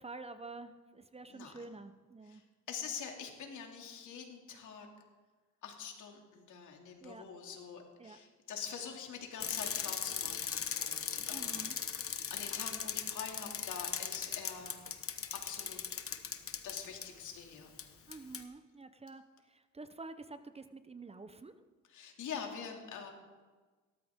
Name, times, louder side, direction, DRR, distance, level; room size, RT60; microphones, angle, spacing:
voice 1, 0.0-2.4 7.0-7.3 8.0-8.2 11.3-11.8 18.1-21.5, right 3 dB, 20° right, 10 dB, 0.7 m, -49 dB
voice 2, 2.7-4.9 5.6-11.7 12.1-14.8 15.4-16.0 16.6-17.7 21.9-23.1, left 6 dB, 75° left, 2 dB, 2.6 m, -45 dB
Bicycle, 9.4-17.1 17.8-17.9 18.1-18.4, left 7 dB, 45° left, 1.2 m, -38 dB
17.0 x 13.5 x 3.6 m, 1.3 s
cardioid pair, 90°, 30 cm